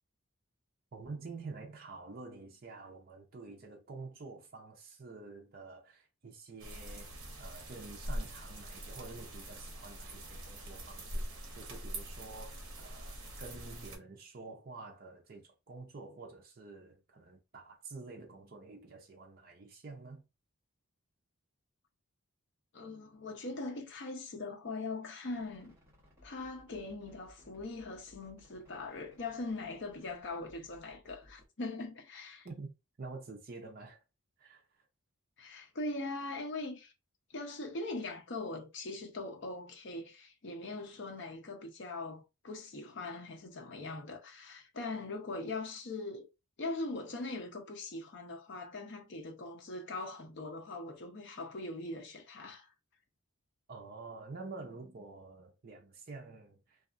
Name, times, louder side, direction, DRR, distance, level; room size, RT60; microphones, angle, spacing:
voice 1, 0.9-20.2 32.4-34.0 34.4-34.8 53.7-56.8, right 3 dB, 40° right, 0.5 m, -48 dB
sound 1, 6.6-14.0, right 1 dB, 60° right, 0.9 m, -43 dB
voice 2, 22.7-25.7 26.2-32.5 35.4-36.9 37.3-46.3 46.6-52.7, left 2 dB, 55° left, 0.6 m, -41 dB
sound 2, 25.3-31.5, left 1 dB, 10° right, 1.0 m, -62 dB
2.7 x 2.3 x 2.5 m
head